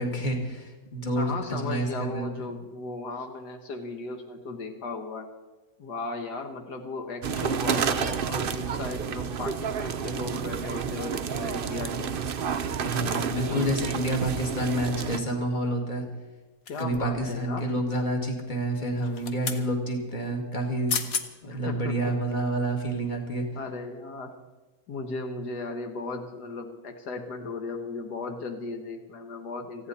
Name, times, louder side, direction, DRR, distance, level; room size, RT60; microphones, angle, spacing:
voice 1, 0.0-2.3 12.8-16.0 16.8-21.0 21.4-23.5, right 1 dB, 25° left, 2 dB, 2.4 m, -28 dB
voice 2, 1.2-5.3 5.8-12.1 13.4-13.7 16.7-17.7 21.4-22.1 23.5-24.4 24.9-29.9, left 3 dB, 75° left, 5 dB, 1.8 m, -36 dB
sound 1, 7.2-15.2, right 7 dB, 55° right, 0.6 m, -30 dB
sound 2, 16.7-17.2 19.0-19.6 20.6-20.7 20.9-21.3 21.8-22.0, left 6 dB, 60° left, 1.5 m, -32 dB
30.0 x 10.0 x 4.2 m, 1.2 s
omnidirectional pair, 1.8 m